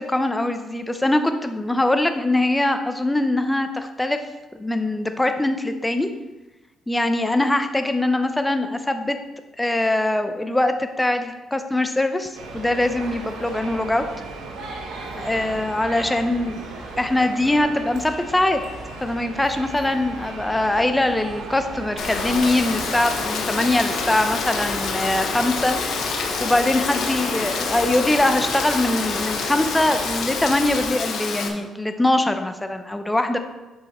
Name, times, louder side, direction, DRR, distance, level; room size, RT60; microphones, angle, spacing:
voice 1, 0.0-4.2 4.5-6.1 6.9-9.2 9.6-14.0 15.2-16.7 17.0-18.6 19.0-25.8 26.1-33.4, left 1 dB, 10° left, 7 dB, 0.7 m, -22 dB
sound 1, 12.3-30.9, right 3 dB, 90° right, 1.6 m, -36 dB
Rain, 22.0-31.5, left 5 dB, 70° left, 1.0 m, -27 dB
7.6 x 5.5 x 4.3 m, 1.1 s
cardioid pair, 90°, 0 cm